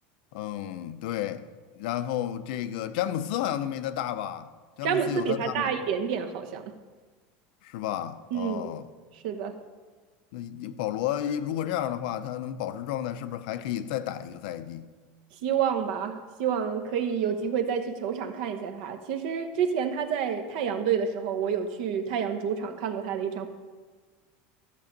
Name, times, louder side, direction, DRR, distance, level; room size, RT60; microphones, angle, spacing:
voice 1, 0.3-1.4 1.7-4.5 4.8-5.7 7.6-8.9 10.3-14.9, left 11 dB, 65° left, 0.6 m, -32 dB
voice 2, 4.8-6.6 8.3-8.7 9.2-9.5 15.4-23.5, right 7 dB, 60° right, 1.0 m, -29 dB
14.0 x 6.9 x 5.2 m
cardioid pair, 175°, 5 cm